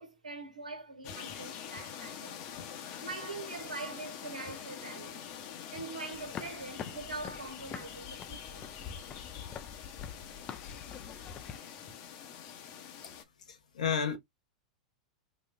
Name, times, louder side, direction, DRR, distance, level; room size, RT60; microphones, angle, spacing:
voice 1, 0.0-2.4 3.0-5.3 5.7-8.7, right 3 dB, 85° right, 1.4 m, -43 dB
sound 1, 1.0-13.2, left 8 dB, 50° left, 0.9 m, -45 dB
sound 2, 6.1-11.6, left 7 dB, 30° left, 0.5 m, -45 dB
voice 2, 13.5-14.2, left 7 dB, 80° left, 1.0 m, -31 dB
4.0 x 2.5 x 2.5 m
hypercardioid pair, 95°, 4 cm